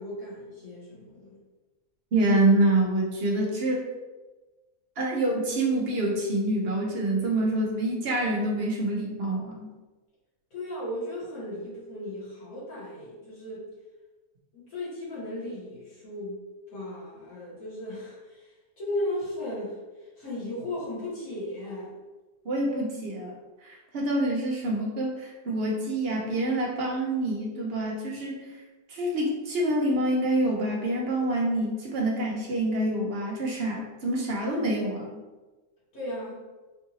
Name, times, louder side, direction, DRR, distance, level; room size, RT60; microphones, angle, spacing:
voice 1, 0.0-1.4 10.5-13.7 14.5-16.4 16.7-21.9 35.9-36.4, left 1 dB, 65° left, -9 dB, 2.0 m, -36 dB
voice 2, 2.1-3.8 5.0-9.7 22.4-23.3 23.6-28.4 28.9-35.2, right 1 dB, 50° right, -1 dB, 0.8 m, -26 dB
4.6 x 2.6 x 2.9 m, 1.2 s
omnidirectional pair, 1.6 m